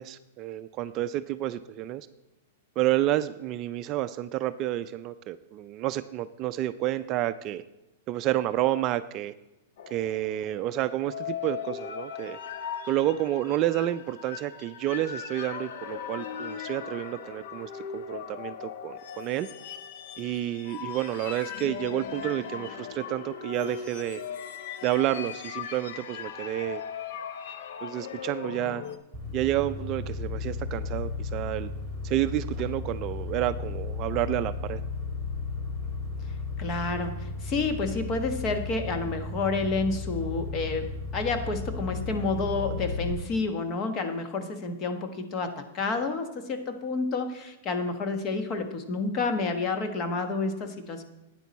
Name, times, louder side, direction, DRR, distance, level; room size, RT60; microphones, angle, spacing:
voice 1, 0.0-2.1 2.8-7.6 8.1-9.3 9.9-12.4 12.9-19.5 20.2-24.2 24.8-26.8 27.8-28.8 29.3-31.7 32.0-34.8, right 13 dB, 35° right, 11 dB, 0.4 m, -30 dB
sound 1, 9.8-29.0, left 8 dB, 65° left, 0.8 m, -39 dB
sound 2, 29.1-43.1, left 3 dB, 10° left, 4.0 m, -34 dB
voice 2, 36.6-51.0, left 3 dB, 30° left, 7 dB, 1.2 m, -30 dB
12.0 x 9.1 x 4.1 m, 0.97 s
hypercardioid pair, 140°, 0 cm